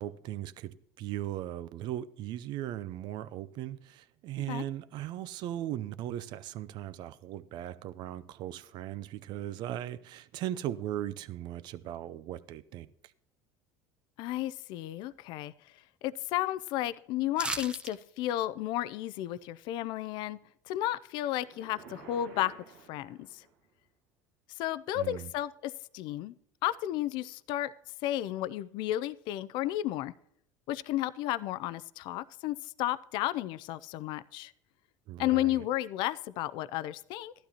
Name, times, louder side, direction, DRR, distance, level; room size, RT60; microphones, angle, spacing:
voice 1, 0.0-12.9 24.9-25.3 35.1-35.6, right 12 dB, 60° right, 0.6 m, -38 dB
voice 2, 14.2-15.7 16.0-20.4 20.7-22.5 22.9-23.4 24.6-26.3 26.6-27.7 28.0-30.1 30.7-34.5 35.2-37.3, left 14 dB, 65° left, 0.5 m, -33 dB
sound 1, 17.4-17.9 18.3-18.4, right 2 dB, 10° right, 0.8 m, -35 dB
sound 2, 21.4-23.7, right 5 dB, 80° right, 1.7 m, -52 dB
15.5 x 12.0 x 2.9 m
supercardioid pair, 90°, 9 cm